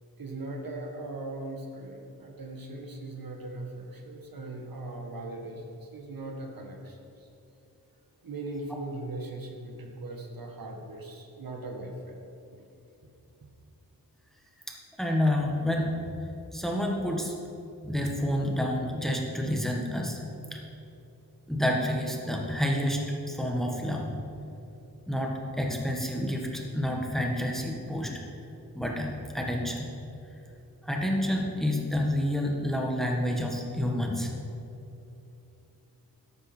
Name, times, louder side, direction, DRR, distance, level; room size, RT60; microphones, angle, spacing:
voice 1, 0.2-7.3 8.2-12.1 12.5-12.6 13.4-13.5, right 2 dB, 65° right, 2 dB, 1.6 m, -39 dB
voice 2, 15.0-16.1 16.5-17.3 17.8-20.6 21.5-24.1 25.1-28.1 28.7-29.9 30.8-34.3, left 1 dB, ahead, 0 dB, 1.6 m, -29 dB
12.5 x 12.0 x 4.5 m, 2.8 s
wide cardioid pair, 120°, 37 cm